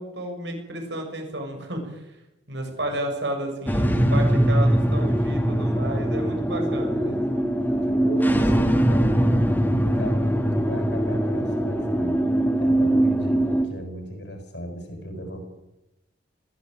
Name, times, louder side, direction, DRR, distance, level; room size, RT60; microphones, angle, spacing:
voice 1, 0.0-2.2 2.5-7.2, right 1 dB, 75° right, 3 dB, 7.1 m, -32 dB
sound 1, 3.7-13.6, right 1 dB, 10° left, 2.0 m, -22 dB
voice 2, 6.2-6.6 6.9-7.3 7.8-9.4 9.7-12.2 12.6-15.4, equal, 70° left, 5 dB, 7.5 m, -36 dB
21.0 x 16.5 x 9.2 m, 0.92 s
head